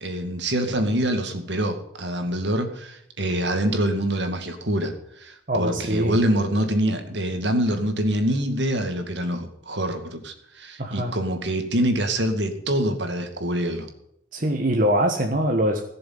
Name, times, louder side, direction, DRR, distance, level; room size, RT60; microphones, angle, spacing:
voice 1, 0.0-13.9, right 1 dB, 70° right, 6 dB, 2.3 m, -25 dB
voice 2, 5.5-6.2 10.8-11.2 14.3-15.8, equal, 45° right, 3 dB, 1.4 m, -23 dB
16.5 x 6.9 x 9.4 m, 0.77 s
head